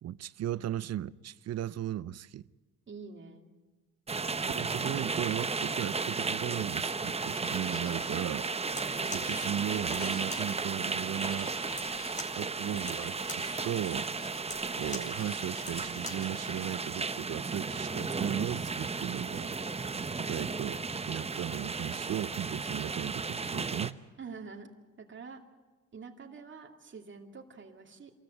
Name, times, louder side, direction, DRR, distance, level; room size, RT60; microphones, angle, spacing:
voice 1, 0.0-2.4 4.5-8.7 9.1-11.5 12.3-14.1 14.8-19.6 20.3-20.8 21.1-24.0, right 11 dB, 55° right, 0.6 m, -36 dB
voice 2, 2.9-3.5 24.2-24.7 25.0-25.4 25.9-28.1, right 5 dB, 40° right, 2.6 m, -46 dB
sound 1, 4.1-23.9, right 4 dB, 20° right, 0.9 m, -34 dB
Writing, 7.3-8.6 9.2-10.8 11.1-12.2 12.7-14.5 14.8-16.6, left 9 dB, 45° left, 0.8 m, -49 dB
sound 2, 8.6-16.3, left 2 dB, 25° left, 5.2 m, -46 dB
26.5 x 14.0 x 9.3 m
cardioid pair, 90°, 30 cm